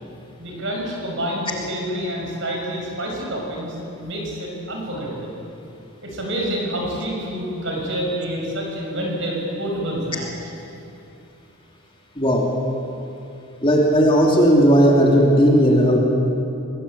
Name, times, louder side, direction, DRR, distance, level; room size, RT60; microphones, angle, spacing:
voice 1, 0.4-5.4 6.0-10.5, equal, 55° right, -1 dB, 6.4 m, -28 dB
voice 2, 12.2-12.5 13.6-16.0, equal, 25° left, -1 dB, 3.0 m, -15 dB
25.0 x 19.5 x 8.7 m, 2.8 s
head